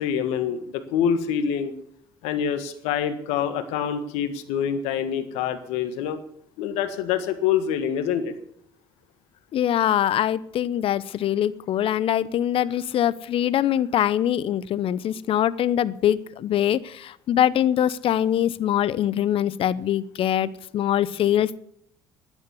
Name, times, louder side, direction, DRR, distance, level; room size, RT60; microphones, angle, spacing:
voice 1, 0.0-1.7 2.2-6.2 6.6-8.3, left 8 dB, 80° left, 9 dB, 1.6 m, -26 dB
voice 2, 9.5-21.6, left 11 dB, 60° left, 19 dB, 0.8 m, -23 dB
11.0 x 9.9 x 9.5 m, 0.69 s
hypercardioid pair, 60°, 11 cm